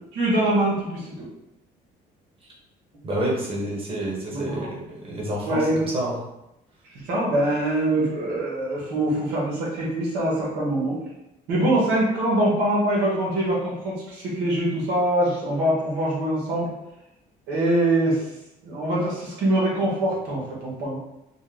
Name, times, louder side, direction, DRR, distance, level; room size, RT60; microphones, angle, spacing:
voice 1, 0.1-1.3 4.3-4.7 5.4-5.9 7.0-11.0 11.5-16.7 17.5-18.3 18.6-21.0, right 1 dB, 85° right, -5 dB, 1.4 m, -23 dB
voice 2, 3.0-5.7 5.9-6.2, right 1 dB, 35° right, -4 dB, 1.2 m, -28 dB
4.1 x 2.2 x 3.8 m, 0.88 s
cardioid pair, 110°, 17 cm